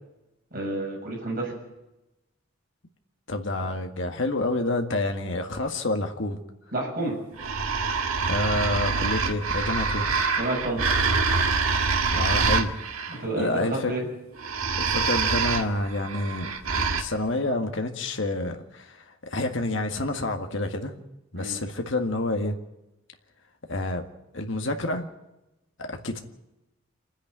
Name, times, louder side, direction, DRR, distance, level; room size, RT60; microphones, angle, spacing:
voice 1, 0.5-1.5 6.7-7.2 10.4-10.8 13.1-14.0 21.4-21.6, right 2 dB, 45° right, 0 dB, 6.9 m, -29 dB
voice 2, 3.3-6.4 8.3-10.1 12.1-12.7 13.1-13.9 14.8-21.0 21.3-22.6 23.7-24.0 24.3-25.1 25.8-26.2, left 2 dB, 65° left, 4 dB, 1.9 m, -28 dB
sound 1, 7.4-13.2 14.4-17.0, right 4 dB, 85° right, 1.7 m, -25 dB
27.5 x 10.0 x 9.4 m, 0.96 s
head